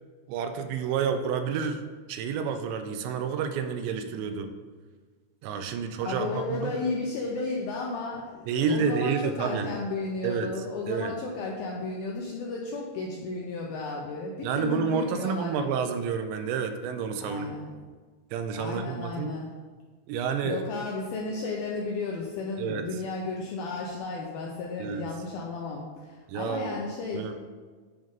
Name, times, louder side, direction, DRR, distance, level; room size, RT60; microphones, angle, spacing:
voice 1, 0.3-1.8 2.1-4.5 5.4-6.7 8.5-9.7 10.2-10.5 10.9-11.1 14.4-17.5 18.3-19.3 20.1-20.7 22.6-22.8 24.8-25.1 26.3-26.8 27.1-27.3, right 6 dB, 85° right, 7 dB, 2.9 m, -29 dB
voice 2, 6.0-15.6 17.2-17.7 18.6-19.5 20.4-27.3, left 3 dB, 80° left, -2 dB, 2.1 m, -33 dB
9.1 x 3.7 x 5.2 m, 1.5 s
omnidirectional pair, 5.1 m